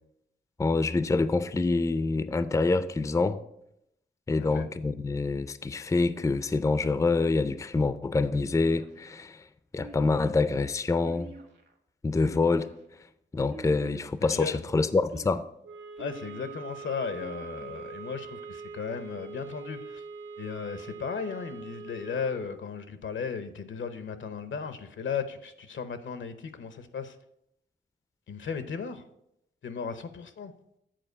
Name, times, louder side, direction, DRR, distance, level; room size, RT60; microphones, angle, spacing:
voice 1, 0.6-3.4 4.3-9.4 9.7-11.3 12.0-12.7 13.3-15.4, left 3 dB, 15° left, 0.4 m, -26 dB
sound 1, 8.6-9.2 9.8-10.3 11.0-11.8 12.2-12.9 13.5-14.2 14.7-15.3 16.0-16.6 17.2-17.8, right 3 dB, 65° right, 1.4 m, -48 dB
voice 2, 14.2-14.6 16.0-20.0 20.4-27.2 28.3-29.1 29.6-30.5, left 6 dB, 80° left, 0.7 m, -36 dB
sound 2, 15.6-22.6, right 5 dB, 85° right, 0.7 m, -43 dB
7.7 x 4.4 x 6.6 m
wide cardioid pair, 80°, 20 cm